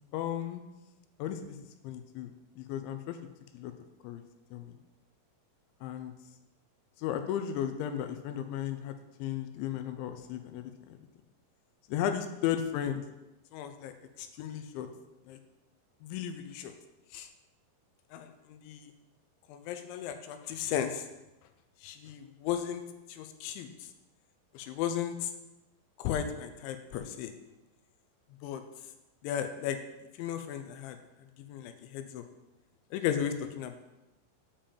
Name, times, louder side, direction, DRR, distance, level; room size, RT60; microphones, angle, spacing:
voice 1, 0.1-0.6 1.2-1.6 1.8-2.3 2.6-3.2 3.5-3.7 4.0-4.2 4.5-4.7 5.8-6.1 7.0-8.9 9.2-11.0 11.9-13.0 13.5-14.9 15.3-15.4 16.0-16.7 17.1-17.3 18.1-18.9 19.5-21.0 21.8-22.8 23.1-23.7 24.5-25.3 26.0-27.3 28.4-28.6 29.2-29.8 30.2-31.0 31.5-32.2 32.9-33.8, left 9 dB, 80° left, 8 dB, 2.9 m, -35 dB
8.8 x 5.4 x 7.1 m, 0.99 s
omnidirectional pair, 5.7 m